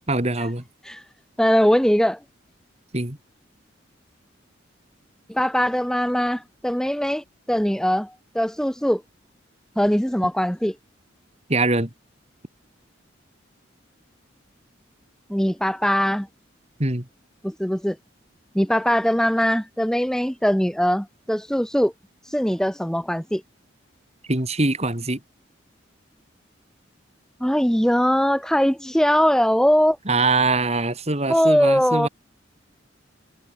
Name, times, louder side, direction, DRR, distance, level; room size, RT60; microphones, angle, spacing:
voice 1, 0.1-0.6 2.9-3.2 11.5-11.9 16.8-17.1 24.3-25.2 30.1-32.1, right 2 dB, 35° right, 3.5 m, -23 dB
voice 2, 1.4-2.2 5.3-9.0 9.8-10.7 15.3-16.3 17.4-18.0 18.5-21.9 22.2-23.4 27.4-30.0 31.3-32.1, equal, 5° left, 1.1 m, -21 dB
head